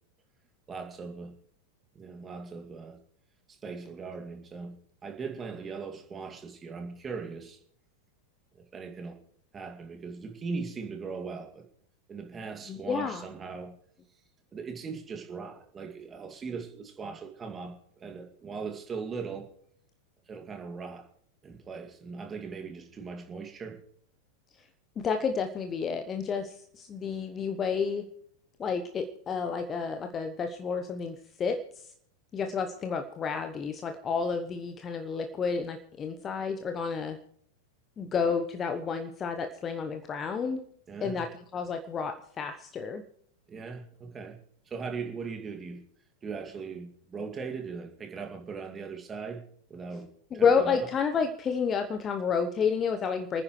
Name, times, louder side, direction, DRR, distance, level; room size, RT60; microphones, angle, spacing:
voice 1, 0.7-1.3 1.9-3.0 3.5-4.7 5.0-7.6 8.5-9.2 9.5-11.6 12.1-13.7 14.5-19.5 20.3-21.1 21.4-23.8 40.9-41.3 43.5-44.4 44.7-45.8 46.2-49.4 49.7-50.9, right 5 dB, 20° right, 3 dB, 2.4 m, -39 dB
voice 2, 12.7-13.2 25.0-28.0 28.6-31.6 32.3-37.2 38.0-40.6 41.0-43.0 50.3-53.4, left 5 dB, 25° left, 7 dB, 1.0 m, -30 dB
29.0 x 9.8 x 3.2 m, 0.64 s
figure-of-eight pair, 90°, 0 cm